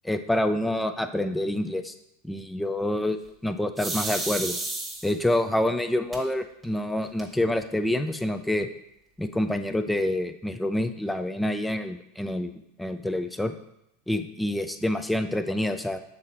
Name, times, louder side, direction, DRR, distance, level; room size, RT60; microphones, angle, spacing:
voice 1, 0.0-1.9 2.2-4.6 5.0-8.7 9.2-12.5 12.8-13.5 14.1-16.0, left 1 dB, 5° left, 9 dB, 0.5 m, -27 dB
sound 1, 3.8-5.3 6.1-6.2 6.6-6.7 7.0-7.6, right 2 dB, 15° right, 1.3 m, -32 dB
6.4 x 3.8 x 4.3 m, 0.81 s
hypercardioid pair, 95°, 0 cm